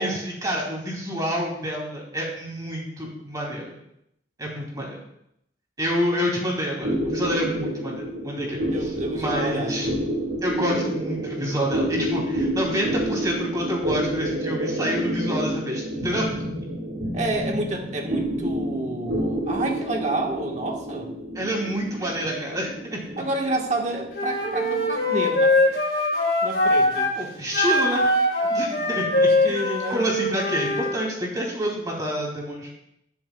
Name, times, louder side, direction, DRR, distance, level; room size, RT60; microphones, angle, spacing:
voice 1, 0.0-3.7 4.4-5.0 5.8-9.9 10.4-16.3 21.3-23.0 27.2-28.1 28.5-32.7, equal, 20° right, -2 dB, 2.9 m, -28 dB
sound 1, 6.8-25.6, equal, 85° right, 2.2 m, -29 dB
voice 2, 8.7-10.0 17.1-21.1 23.2-25.8 26.4-27.1 28.6-30.1, right 2 dB, 40° right, 1 dB, 1.5 m, -30 dB
Wind instrument woodwind instrument, 24.1-27.1 27.5-30.9, left 1 dB, 60° left, 4.4 m, -22 dB
21.0 x 7.1 x 2.4 m, 0.77 s
head